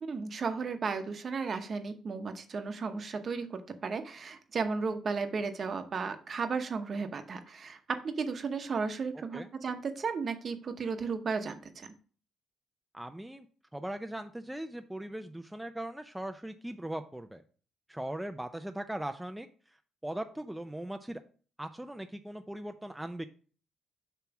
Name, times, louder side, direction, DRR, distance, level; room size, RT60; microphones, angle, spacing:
voice 1, 0.0-11.9, right 5 dB, 40° right, 7 dB, 0.8 m, -34 dB
voice 2, 12.9-13.5 13.7-17.4 17.9-19.8 20.0-21.2 21.6-23.3, right 1 dB, 5° right, 7 dB, 0.4 m, -39 dB
6.9 x 3.0 x 5.8 m, 0.41 s
cardioid pair, 130°, 0 cm